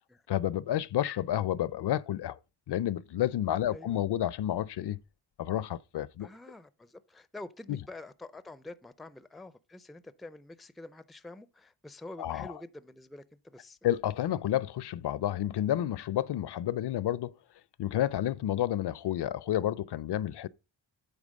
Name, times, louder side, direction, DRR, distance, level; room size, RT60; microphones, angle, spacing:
voice 1, 0.3-2.4 2.7-5.0 5.4-6.3 7.7-7.8 12.2-12.5 13.8-17.3 17.8-20.5, left 12 dB, 65° left, 0.5 m, -30 dB
voice 2, 3.7-4.0 6.2-13.8, left 2 dB, ahead, 0.4 m, -47 dB
8.8 x 3.9 x 6.3 m
cardioid pair, 90°, 44 cm